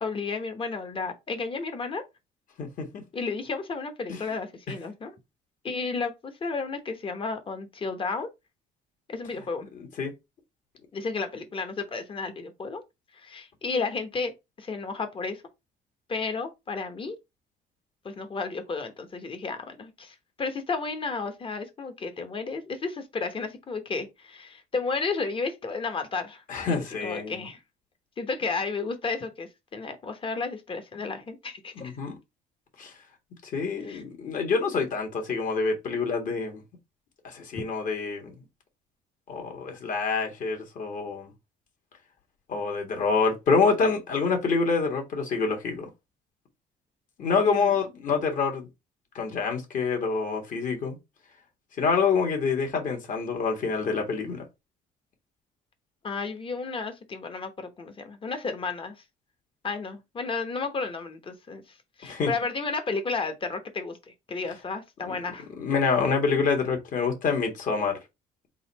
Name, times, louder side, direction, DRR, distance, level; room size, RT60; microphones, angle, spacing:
voice 1, 0.0-2.0 3.1-5.1 5.6-8.3 9.1-9.7 10.9-12.8 13.1-15.4 16.1-17.2 18.0-27.6 28.2-31.9 33.9-34.0 47.4-47.8 56.0-59.0 59.6-64.0 64.3-65.5, left 4 dB, 30° left, 1.0 m, -32 dB
voice 2, 2.6-3.0 4.1-4.2 10.0-10.1 26.5-27.4 31.7-32.1 32.8-32.9 33.5-36.6 37.2-38.3 39.3-41.3 42.5-45.9 47.2-48.7 49.1-51.0 51.8-54.4 62.0-62.3 65.1-65.2 65.6-68.0, left 5 dB, 50° left, 1.6 m, -26 dB
4.0 x 2.6 x 4.1 m
cardioid pair, 110°, 17 cm